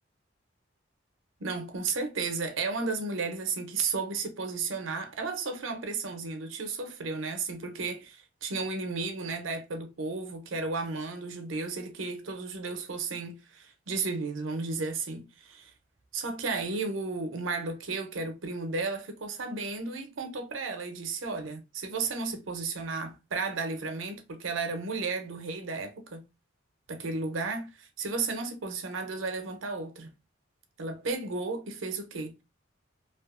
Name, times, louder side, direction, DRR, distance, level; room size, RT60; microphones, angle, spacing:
voice 1, 1.4-15.7 16.1-26.2 26.9-30.1 30.8-32.3, right 4 dB, 85° right, 0.6 m, -33 dB
2.6 x 2.4 x 2.4 m
head